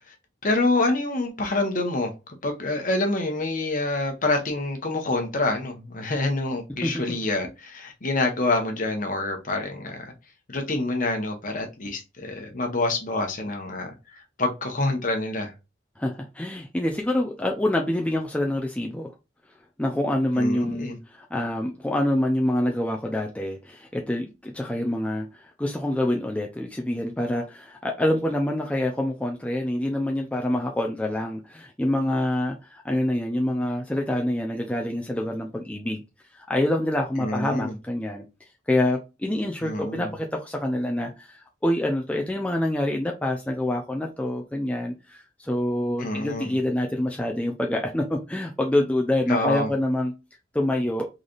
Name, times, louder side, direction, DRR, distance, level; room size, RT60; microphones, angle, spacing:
voice 1, 0.4-2.1 2.4-10.1 10.5-13.9 14.4-15.5 20.4-21.0 37.2-37.7 39.6-40.1 46.0-46.5 49.3-49.7, left 2 dB, 45° left, 1.0 m, -26 dB
voice 2, 16.0-19.1 19.8-36.0 36.3-38.2 38.7-50.1 50.5-51.1, left 1 dB, 5° left, 0.4 m, -26 dB
3.9 x 3.2 x 2.5 m
head